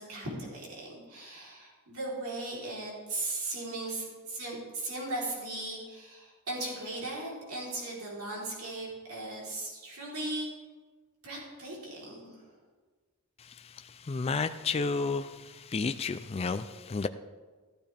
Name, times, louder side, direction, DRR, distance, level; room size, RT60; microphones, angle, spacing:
voice 1, 0.0-10.5 11.2-12.5, right 2 dB, 70° right, -4 dB, 3.7 m, -38 dB
voice 2, 14.1-15.3 15.7-17.1, left 4 dB, 25° left, 10 dB, 0.4 m, -30 dB
14.0 x 12.5 x 3.5 m, 1.4 s
head